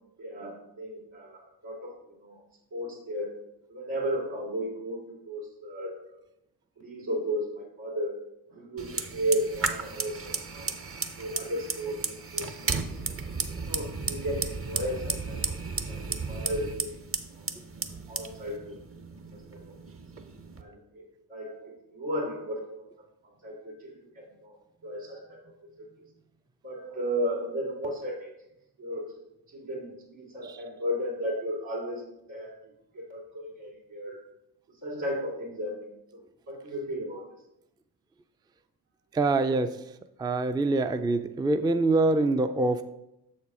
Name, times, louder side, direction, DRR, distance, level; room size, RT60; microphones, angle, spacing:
voice 1, 0.2-2.4 2.7-3.4 3.7-6.2 6.8-8.2 8.5-10.9 11.2-13.0 13.5-15.5 15.9-17.0 17.3-17.5 17.8-19.0 19.3-19.8 20.6-22.9 23.4-24.6 24.8-25.4 25.8-25.9 26.6-28.3 28.8-29.1 29.5-32.0 32.3-32.6 32.9-34.2 34.7-36.2 36.5-37.2, equal, 80° right, -5 dB, 2.7 m, -35 dB
Fire, 8.8-20.6, right 4 dB, 30° right, 0.7 m, -34 dB
voice 2, 39.1-39.8 40.2-42.8, right 2 dB, 10° right, 10 dB, 0.4 m, -25 dB
6.7 x 4.5 x 4.8 m, 0.85 s
supercardioid pair, 50°, 45 cm